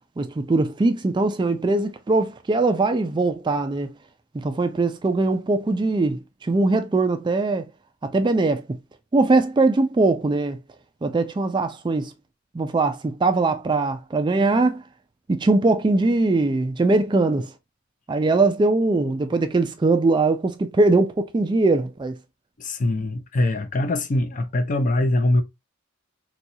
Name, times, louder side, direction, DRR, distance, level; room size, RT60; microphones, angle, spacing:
voice 1, 0.2-3.9 4.3-7.6 8.0-8.6 9.1-10.6 11.0-12.1 12.5-14.8 15.3-17.5 18.1-22.1, right 3 dB, 20° right, 0.3 m, -21 dB
voice 2, 22.6-25.4, left 1 dB, 40° left, 0.5 m, -22 dB
4.1 x 2.3 x 2.6 m
head